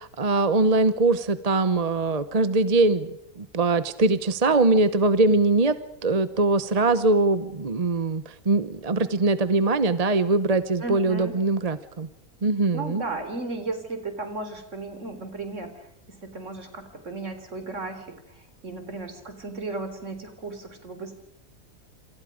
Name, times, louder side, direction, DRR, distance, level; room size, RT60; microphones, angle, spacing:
voice 1, 0.0-3.1 3.4-5.8 6.0-12.1 12.4-13.0, right 3 dB, 30° right, 12 dB, 0.9 m, -22 dB
voice 2, 10.8-11.4 12.7-21.1, right 3 dB, 55° right, 7 dB, 4.0 m, -35 dB
28.0 x 27.0 x 5.1 m, 0.84 s
omnidirectional pair, 1.6 m